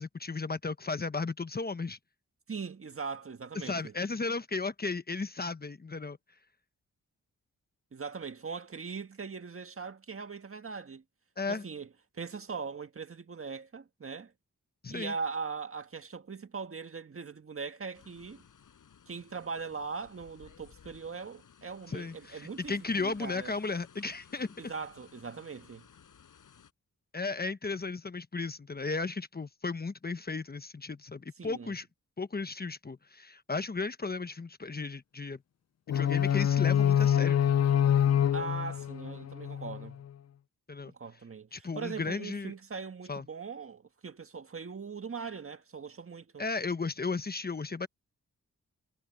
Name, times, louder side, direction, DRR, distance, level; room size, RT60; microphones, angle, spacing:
voice 1, 0.0-2.0 3.5-6.2 11.4-11.6 14.8-15.1 21.9-24.5 27.1-31.9 32.2-35.4 35.9-37.4 40.7-40.9 41.5-42.5 43.1-43.3 46.4-47.9, left 4 dB, 30° left, 1.1 m, -35 dB
voice 2, 2.5-3.9 7.9-11.0 11.5-11.9 12.1-14.3 14.9-18.5 19.1-23.5 24.6-25.9 31.4-31.7 38.3-40.0 40.9-46.4, right 5 dB, 45° right, 1.7 m, -40 dB
sound 1, 17.9-26.7, left 7 dB, 75° left, 6.7 m, -58 dB
sound 2, 35.9-39.9, left 9 dB, 55° left, 0.6 m, -26 dB
cardioid pair, 70°, 31 cm